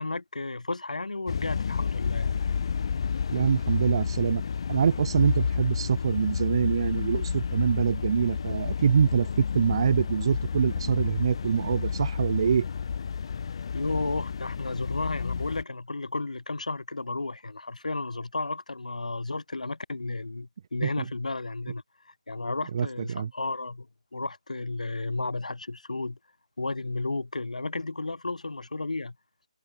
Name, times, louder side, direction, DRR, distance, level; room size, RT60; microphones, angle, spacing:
voice 1, 0.0-2.4 13.7-23.9 24.1-26.2 26.6-29.1, left 3 dB, 85° left, 2.7 m, -33 dB
sound 1, 1.3-15.6, left 6 dB, 45° left, 0.7 m, -30 dB
voice 2, 3.3-4.4 4.7-9.3 9.5-12.7 20.8-20.9 22.7-23.3, right 7 dB, 45° right, 0.6 m, -25 dB
figure-of-eight pair, 160°, 4 cm